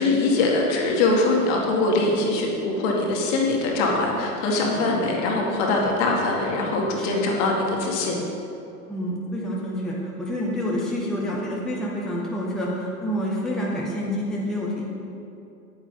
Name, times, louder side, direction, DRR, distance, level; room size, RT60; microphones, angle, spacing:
voice 1, 0.0-8.2, left 2 dB, 45° left, -1 dB, 1.9 m, -22 dB
voice 2, 4.5-4.8 5.7-5.9 7.0-7.4 8.9-14.8, equal, ahead, -5 dB, 1.3 m, -28 dB
9.3 x 9.1 x 3.9 m, 2.7 s
hypercardioid pair, 100°, 45 cm